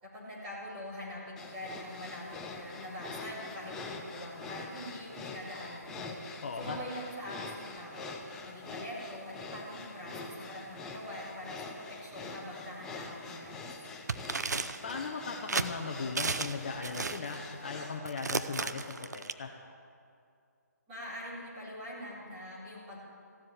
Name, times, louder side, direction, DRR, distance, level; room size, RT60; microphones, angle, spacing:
voice 1, 0.0-6.2 6.6-8.2 8.4-13.7 20.9-23.0, left 1 dB, 15° right, -8 dB, 4.1 m, -43 dB
sound 1, 1.4-18.0, left 3 dB, 5° left, 0.4 m, -45 dB
voice 2, 6.4-6.8 14.8-19.5, left 4 dB, 35° left, 2 dB, 1.0 m, -38 dB
sound 2, 14.1-14.9 15.5-15.7 16.2-16.6 16.8-17.4 18.1-19.3, right 4 dB, 70° right, 0.7 m, -33 dB
15.5 x 7.6 x 9.2 m, 2.4 s
hypercardioid pair, 165°, 9 cm